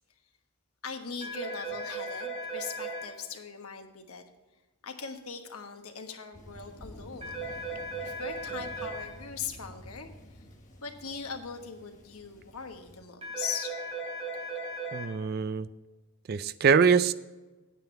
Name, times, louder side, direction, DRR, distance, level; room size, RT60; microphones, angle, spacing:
voice 1, 0.8-4.2 4.8-10.1 10.8-13.8, left 6 dB, 80° left, 5 dB, 1.3 m, -40 dB
sound 1, 1.2-3.0 7.2-9.0 13.2-15.0, right 2 dB, 25° right, 3.2 m, -36 dB
Thunder, 6.3-13.0, equal, 35° left, 1.3 m, -50 dB
voice 2, 14.9-15.7 16.3-17.1, right 6 dB, 45° right, 15 dB, 0.3 m, -23 dB
9.2 x 9.0 x 4.4 m, 1.2 s
head